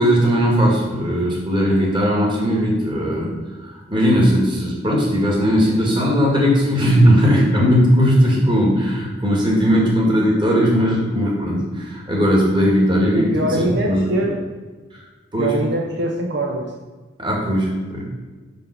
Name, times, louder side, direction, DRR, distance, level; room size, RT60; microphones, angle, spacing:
voice 1, 0.0-3.3 3.6-13.3 13.8-14.0 15.3-15.5 17.2-18.0, equal, 25° right, -2 dB, 1.8 m, -18 dB
voice 2, 13.1-14.4 15.4-16.7, right 1 dB, 60° right, 0 dB, 0.8 m, -23 dB
5.4 x 5.3 x 6.5 m, 1.3 s
head